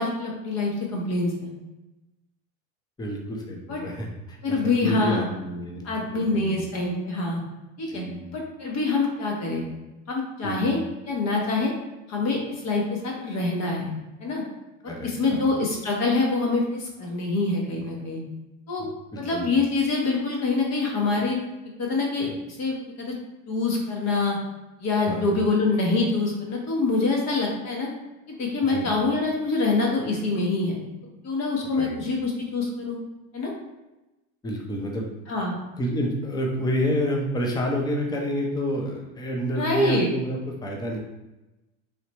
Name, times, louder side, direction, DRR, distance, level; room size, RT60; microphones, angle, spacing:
voice 1, 0.0-1.5 3.7-3.8 4.4-5.3 5.8-7.4 7.8-8.0 8.3-9.6 10.1-10.8 11.1-11.7 12.1-13.9 14.2-14.4 14.8-18.2 18.7-18.9 19.2-21.4 21.8-23.1 23.5-24.4 24.8-27.9 28.3-30.8 31.2-33.0 33.3-33.5 35.3-35.5 39.6-40.1, left 3 dB, 40° left, -1 dB, 1.2 m, -25 dB
voice 2, 3.0-5.9 6.1-6.7 7.9-8.2 10.4-10.7 14.9-15.5 18.8-19.5 25.1-25.3 28.7-28.9 31.8-32.0 34.4-35.1 35.8-41.0, equal, 10° left, 0 dB, 0.6 m, -29 dB
3.4 x 2.7 x 3.0 m, 1.0 s
supercardioid pair, 100°, 40 cm